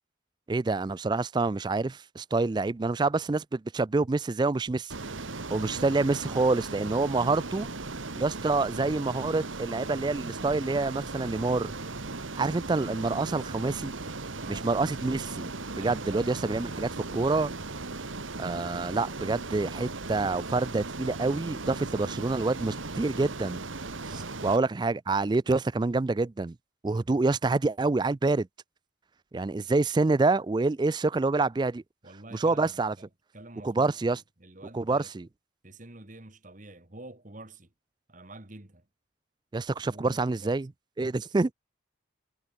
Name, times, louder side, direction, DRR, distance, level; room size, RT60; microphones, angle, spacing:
voice 1, 0.5-4.9 5.5-7.7 8.2-11.7 12.4-13.9 14.5-15.5 15.8-17.5 18.4-23.6 24.4-26.6 26.8-28.5 29.3-31.8 32.3-32.9 33.6-34.2 34.7-35.3 39.5-40.7 41.0-41.5, right 3 dB, 20° right, 0.3 m, -27 dB
Ocean, 4.9-24.6, right 3 dB, 75° right, 1.9 m, -37 dB
voice 2, 14.3-14.7 15.7-16.5 24.1-24.4 32.0-35.1 35.6-37.7 38.1-38.9 39.9-40.6, right 2 dB, 40° right, 1.9 m, -48 dB
head